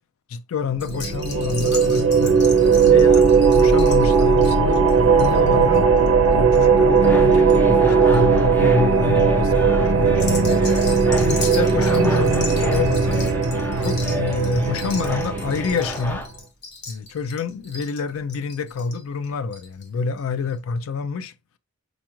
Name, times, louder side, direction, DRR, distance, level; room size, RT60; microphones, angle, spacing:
voice 1, 0.3-2.4 2.8-5.9 6.3-10.6 11.2-13.2 13.8-16.2 16.9-21.3, left 5 dB, 80° left, 0.4 m, -27 dB
sound 1, 0.7-16.2, right 5 dB, 70° right, 0.4 m, -17 dB
sound 2, 0.8-7.6 7.9-8.4 8.9-9.2 10.1-19.9 20.2-20.3 20.5-20.6, left 4 dB, 50° left, 1.0 m, -37 dB
sound 3, 6.9-16.3, left 1 dB, 10° left, 0.4 m, -34 dB
5.1 x 2.4 x 3.0 m
head